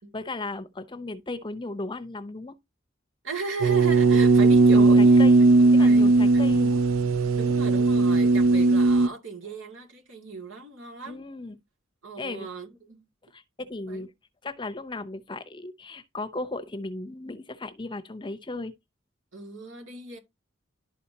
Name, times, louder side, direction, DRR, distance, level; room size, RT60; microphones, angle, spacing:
voice 1, 0.1-2.6 4.7-5.4 5.7-6.8 8.6-8.8 11.1-11.6 12.2-12.5 13.3-14.1 14.4-18.7, left 2 dB, 25° left, 0.7 m, -36 dB
voice 2, 3.2-5.2 5.6-6.4 7.3-11.2 12.0-13.1 13.9-14.1 19.3-20.2, right 4 dB, 70° right, 2.3 m, -37 dB
sound 1, 3.6-9.1, right 3 dB, 90° right, 0.4 m, -18 dB
11.5 x 4.2 x 2.8 m
head